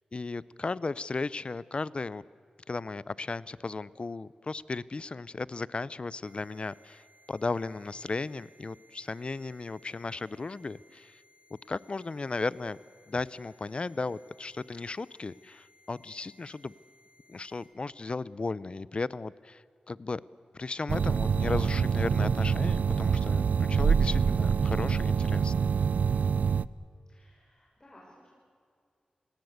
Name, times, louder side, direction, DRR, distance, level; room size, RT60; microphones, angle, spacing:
voice 1, 0.1-2.2 2.7-11.2 11.7-12.8 13.1-16.7 17.3-20.2 20.5-25.5, left 3 dB, 45° left, 20 dB, 0.6 m, -35 dB
sound 1, 6.2-17.7, left 1 dB, 55° right, 6.5 m, -62 dB
sound 2, 20.9-26.7, right 6 dB, 80° right, 0.5 m, -26 dB
voice 2, 25.8-26.2 27.1-28.3, left 1 dB, 25° left, -5 dB, 6.5 m, -57 dB
27.5 x 18.5 x 8.1 m, 2.3 s
wide cardioid pair, 75°, 3 cm